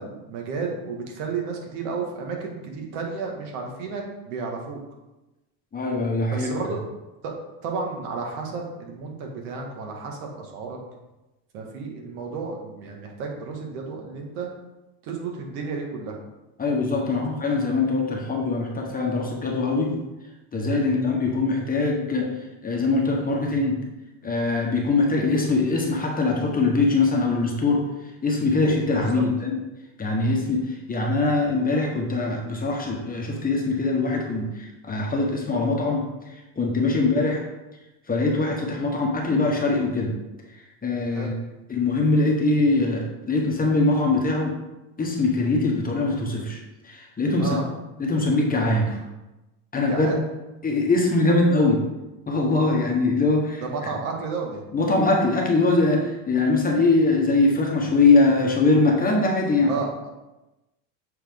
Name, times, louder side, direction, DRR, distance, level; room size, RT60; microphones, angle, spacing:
voice 1, 0.0-4.8 6.3-6.8 7.2-7.3 7.6-10.8 11.5-14.5 15.0-16.2 17.0-17.2 20.8-21.0 28.9-29.3 36.8-37.0 41.1-41.3 47.4-47.7 49.7-50.2 53.6-54.6 59.6-60.1, right 4 dB, 70° right, 1 dB, 1.7 m, -32 dB
voice 2, 5.7-6.5 16.6-20.0 20.5-22.3 22.6-23.8 24.2-27.8 28.2-29.6 30.0-36.1 36.6-37.4 38.1-40.2 40.8-41.3 41.7-44.5 45.0-47.6 48.0-49.0 49.7-50.2 50.6-51.8 52.3-53.6 54.7-59.7, left 3 dB, 20° left, 0 dB, 1.1 m, -22 dB
7.7 x 4.1 x 3.6 m, 1.0 s
supercardioid pair, 125°, 48 cm